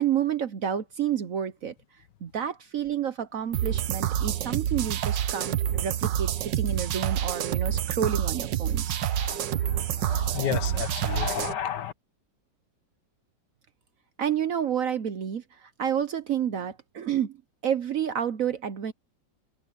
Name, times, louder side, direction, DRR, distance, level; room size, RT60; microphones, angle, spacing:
voice 1, 0.0-1.7 2.2-6.3 6.6-9.0 14.2-17.4 17.6-18.9, right 9 dB, 55° right, 1.0 m, -29 dB
sound 1, 3.5-11.5, right 11 dB, 75° right, 1.6 m, -28 dB
voice 2, 8.9-11.9, left 10 dB, 70° left, 1.6 m, -33 dB
omnidirectional pair, 2.0 m